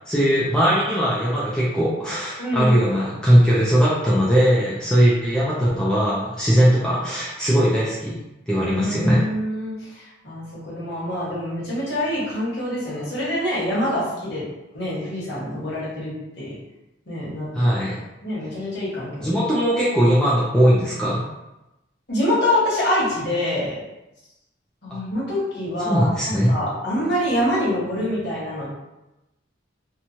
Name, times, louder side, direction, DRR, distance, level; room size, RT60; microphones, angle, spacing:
voice 1, 0.1-8.2 8.5-9.2 17.5-18.0 19.2-21.2 25.8-26.5, equal, 5° left, -8 dB, 0.4 m, -19 dB
voice 2, 2.4-3.0 8.5-14.4 14.7-16.6 17.1-17.7 18.2-19.3 22.1-23.8 24.8-28.7, left 1 dB, 55° left, -8 dB, 1.1 m, -25 dB
2.9 x 2.2 x 2.7 m, 0.96 s
head